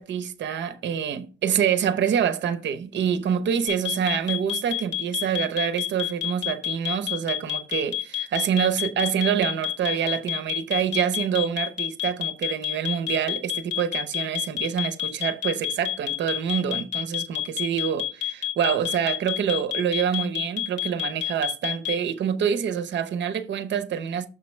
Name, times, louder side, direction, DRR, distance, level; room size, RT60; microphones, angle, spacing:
voice 1, 0.0-24.3, right 8 dB, 70° right, 0.8 m, -26 dB
sound 1, 3.7-21.9, left 13 dB, 70° left, 1.8 m, -28 dB
6.7 x 5.8 x 3.2 m
cardioid pair, 130°, 19 cm